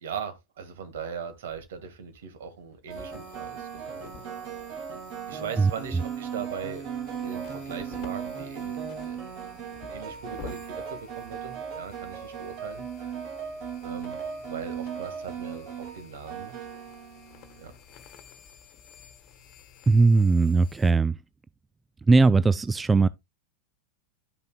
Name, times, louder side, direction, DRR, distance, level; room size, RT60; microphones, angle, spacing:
voice 1, 0.0-4.0 5.3-6.9 7.2-9.2 9.9-13.2 13.8-16.5 17.6-17.7, right 7 dB, 70° right, 1.7 m, -39 dB
sound 1, 1.3-1.6 2.9-17.7, right 7 dB, 50° right, 2.2 m, -37 dB
sound 2, 2.9-20.9, left 7 dB, 45° left, 1.2 m, -51 dB
voice 2, 19.9-21.1 22.1-23.1, right 3 dB, 15° right, 0.3 m, -19 dB
11.5 x 5.6 x 2.2 m
hypercardioid pair, 95°, 0 cm